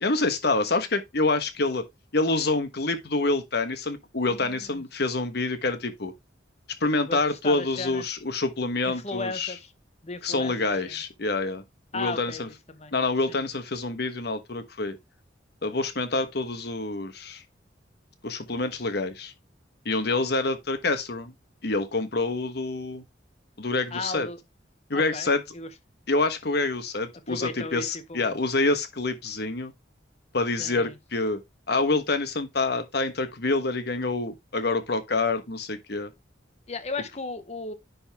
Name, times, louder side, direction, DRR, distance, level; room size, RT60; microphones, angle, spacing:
voice 1, 0.0-1.8 2.1-6.1 6.8-9.6 10.2-11.6 11.9-12.5 12.9-15.0 15.6-17.4 18.2-19.3 19.8-21.3 21.6-23.0 23.6-24.3 24.9-25.4 26.1-29.7 30.3-31.4 31.7-36.1, left 3 dB, 60° left, 1.2 m, -27 dB
voice 2, 4.3-4.8 7.1-8.0 8.8-9.7 10.0-10.5 10.8-11.0 11.9-12.4 12.7-12.9 13.3-13.4 23.9-24.4 24.9-25.7 27.3-28.3 30.6-30.9 36.7-37.7, left 3 dB, 35° left, 1.0 m, -35 dB
10.5 x 4.2 x 3.5 m
head